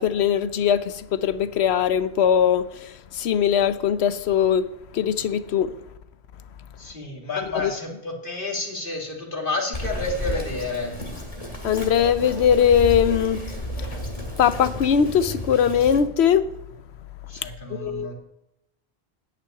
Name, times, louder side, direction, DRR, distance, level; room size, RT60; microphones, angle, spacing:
voice 1, 0.0-4.7 4.9-5.7 7.4-7.7 11.6-13.4 14.4-16.4 17.8-18.1, left 8 dB, 80° left, 1.0 m, -21 dB
voice 2, 6.8-10.9 17.3-18.1, left 2 dB, 55° left, 2.7 m, -30 dB
Bird vocalization bird call bird song, 9.7-16.0, left 1 dB, 35° left, 2.0 m, -32 dB
10.5 x 5.8 x 8.8 m
omnidirectional pair, 1.1 m